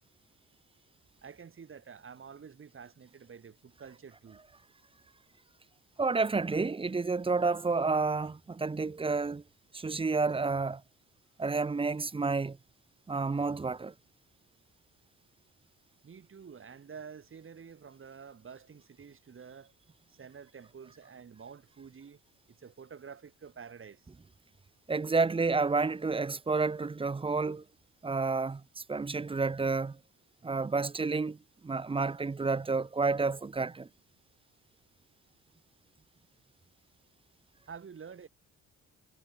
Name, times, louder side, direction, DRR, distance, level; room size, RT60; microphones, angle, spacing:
voice 1, 0.5-0.8 1.2-4.4 16.0-19.8 20.1-22.2 22.6-24.1 37.7-38.3, right 6 dB, 45° right, 6.2 m, -49 dB
voice 2, 6.0-9.4 9.7-10.8 11.4-12.6 13.1-13.9 24.9-27.6 28.0-30.0 30.4-31.4 31.6-33.9, right 4 dB, 20° right, 0.7 m, -30 dB
cardioid pair, 90°, 30 cm